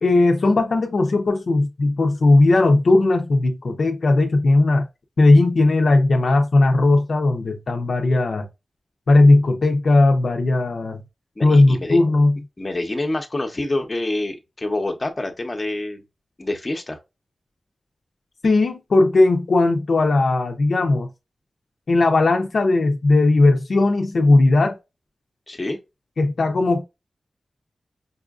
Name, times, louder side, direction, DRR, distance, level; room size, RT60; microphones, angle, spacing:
voice 1, 0.0-4.9 5.2-8.5 9.1-11.0 11.4-12.4 18.4-21.1 21.9-24.8 26.2-26.8, left 2 dB, 70° left, 0.6 m, -17 dB
voice 2, 11.4-12.0 12.6-16.0 16.4-17.0 25.5-25.8, left 2 dB, 30° left, 0.8 m, -27 dB
5.4 x 2.5 x 2.4 m
wide cardioid pair, 95°, 0 cm